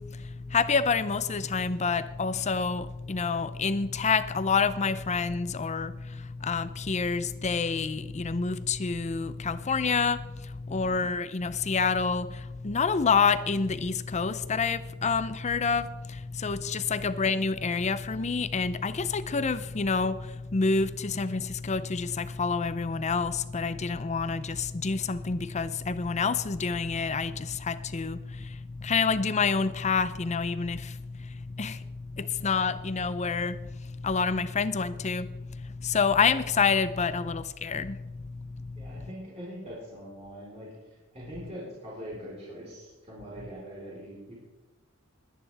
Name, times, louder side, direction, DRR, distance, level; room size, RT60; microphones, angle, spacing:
voice 1, 0.0-39.1, left 5 dB, 35° left, 0.6 m, -28 dB
voice 2, 10.7-11.1 16.9-17.1 38.7-44.3, equal, 30° right, 4.1 m, -43 dB
21.0 x 10.5 x 3.5 m
head